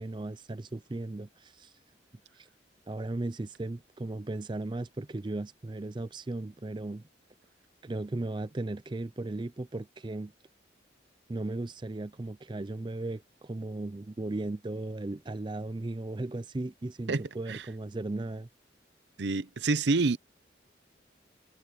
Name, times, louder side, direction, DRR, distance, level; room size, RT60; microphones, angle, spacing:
voice 1, 0.0-1.7 2.3-2.5 2.9-7.0 7.8-10.3 11.3-18.5, right 2 dB, 25° right, 0.4 m, -36 dB
voice 2, 19.2-20.2, right 3 dB, 75° right, 0.7 m, -27 dB
head